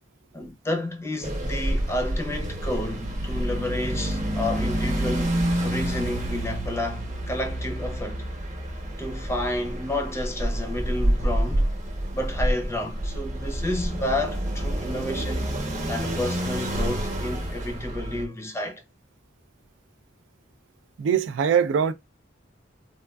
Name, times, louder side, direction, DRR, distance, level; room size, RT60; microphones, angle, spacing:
voice 1, 0.3-8.3 9.0-11.7 12.1-15.5 15.9-18.8, left 1 dB, 15° left, 0.5 m, -31 dB
sound 1, 1.2-18.2, right 1 dB, 40° right, 0.9 m, -28 dB
voice 2, 21.0-21.9, right 7 dB, 75° right, 0.3 m, -22 dB
3.4 x 2.2 x 2.2 m
head